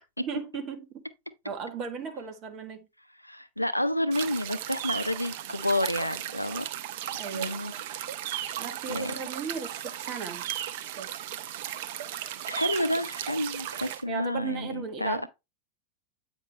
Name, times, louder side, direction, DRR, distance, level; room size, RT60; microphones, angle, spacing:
voice 1, 0.2-0.9 1.4-2.9 7.2-7.6 8.6-10.5 10.9-11.2 14.1-15.3, right 6 dB, 35° right, 1.5 m, -36 dB
voice 2, 3.2-6.7 7.3-7.7 8.9-9.1 12.5-15.3, left 1 dB, 90° left, 0.5 m, -29 dB
sound 1, 4.1-14.0, right 11 dB, 50° right, 0.7 m, -36 dB
8.7 x 5.2 x 3.1 m
figure-of-eight pair, 90°, 0 cm